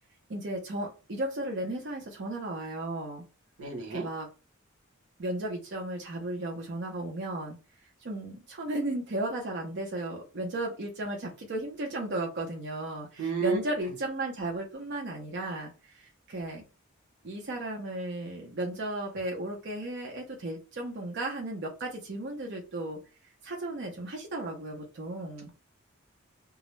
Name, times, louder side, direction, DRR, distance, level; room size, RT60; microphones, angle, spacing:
voice 1, 0.3-3.2 3.9-4.3 5.2-7.6 8.0-16.6 17.2-23.0 23.4-25.5, right 1 dB, 55° right, 0.6 m, -35 dB
voice 2, 3.6-4.1 13.2-13.6, right 5 dB, 85° right, 0.8 m, -30 dB
2.3 x 2.0 x 3.0 m
head